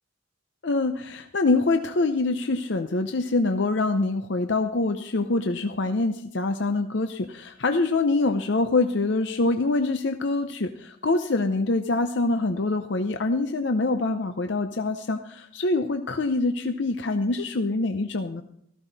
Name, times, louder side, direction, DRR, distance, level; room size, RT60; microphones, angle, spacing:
voice 1, 0.6-18.4, left 3 dB, 65° left, 8 dB, 0.7 m, -25 dB
14.5 x 14.0 x 4.1 m, 0.73 s
head